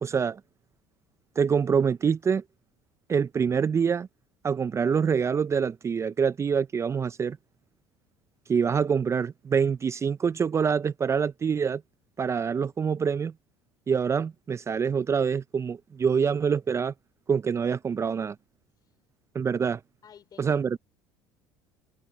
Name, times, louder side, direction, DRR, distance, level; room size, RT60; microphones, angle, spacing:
voice 1, 0.0-0.4 1.4-2.4 3.1-4.1 4.4-7.4 8.5-11.8 12.2-13.3 13.9-16.9 17.3-18.4 19.3-19.8 20.4-20.8, right 6 dB, 30° right, 0.5 m, -25 dB
voice 2, 20.0-20.8, left 8 dB, 45° left, 3.9 m, -51 dB
hypercardioid pair, 80°, 10 cm